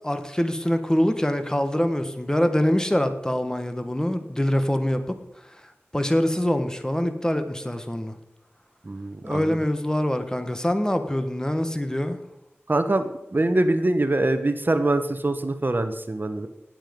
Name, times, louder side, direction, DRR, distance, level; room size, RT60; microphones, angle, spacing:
voice 1, 0.0-5.0 5.5-5.6 5.9-8.2 9.2-12.2, left 1 dB, 15° left, 8 dB, 1.4 m, -24 dB
voice 2, 8.9-9.6 12.7-16.5, right 2 dB, 45° right, 9 dB, 1.1 m, -24 dB
19.0 x 7.7 x 5.3 m, 0.87 s
wide cardioid pair, 50°, 5 cm